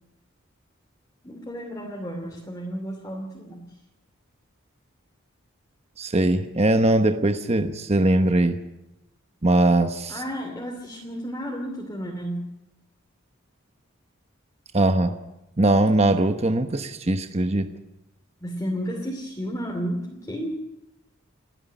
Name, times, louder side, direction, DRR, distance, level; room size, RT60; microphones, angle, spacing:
voice 1, 1.2-3.7 10.1-12.4 18.4-20.6, equal, 15° left, -1 dB, 2.7 m, -32 dB
voice 2, 6.0-8.6 9.4-10.2 14.7-15.2 15.6-17.7, right 2 dB, 30° right, 7 dB, 1.0 m, -21 dB
29.5 x 9.9 x 10.0 m, 0.93 s
head